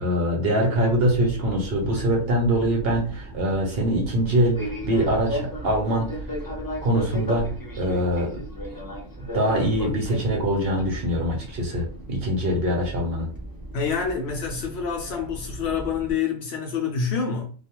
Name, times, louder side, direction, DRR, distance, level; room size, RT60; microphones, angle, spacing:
voice 1, 0.0-6.1 6.8-7.5 7.8-8.4 9.3-13.3, right 1 dB, 55° right, 0.8 m, -23 dB
Fixed-wing aircraft airplane, 0.8-16.1, equal, 20° left, 0.7 m, -36 dB
voice 2, 13.7-17.5, left 6 dB, 65° left, 0.7 m, -27 dB
2.4 x 2.3 x 2.8 m
omnidirectional pair, 1.4 m